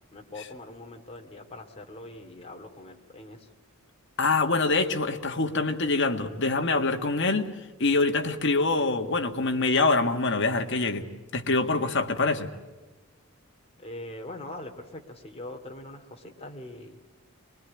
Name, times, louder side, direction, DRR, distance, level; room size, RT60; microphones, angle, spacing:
voice 1, 0.1-3.5 13.8-17.0, left 1 dB, 30° left, 3 dB, 2.5 m, -42 dB
voice 2, 4.2-7.5 7.8-11.0 11.3-12.5, left 3 dB, 55° left, 5 dB, 1.7 m, -25 dB
24.0 x 21.0 x 9.7 m, 1.2 s
head